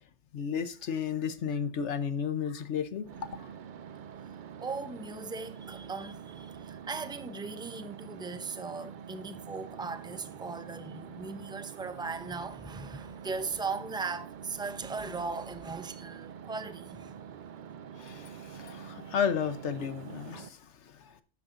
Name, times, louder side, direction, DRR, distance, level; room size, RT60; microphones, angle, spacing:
voice 1, 0.3-3.5 18.0-21.1, left 7 dB, 75° left, 1.2 m, -33 dB
sound 1, 3.0-20.5, right 7 dB, 55° right, 0.6 m, -46 dB
voice 2, 4.6-17.1, right 4 dB, 5° right, 0.6 m, -38 dB
12.0 x 8.4 x 2.6 m
omnidirectional pair, 1.2 m